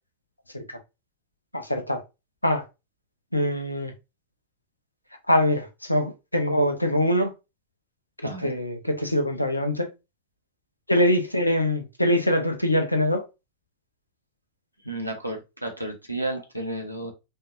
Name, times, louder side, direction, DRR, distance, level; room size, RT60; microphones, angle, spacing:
voice 1, 1.5-2.0 2.4-2.6 3.3-3.9 5.3-7.3 8.2-9.9 10.9-13.2, left 1 dB, 85° left, 0.8 m, -23 dB
voice 2, 8.2-8.5 14.8-17.1, right 1 dB, 90° right, 1.1 m, -32 dB
5.4 x 2.8 x 2.6 m
figure-of-eight pair, 90°, 0 cm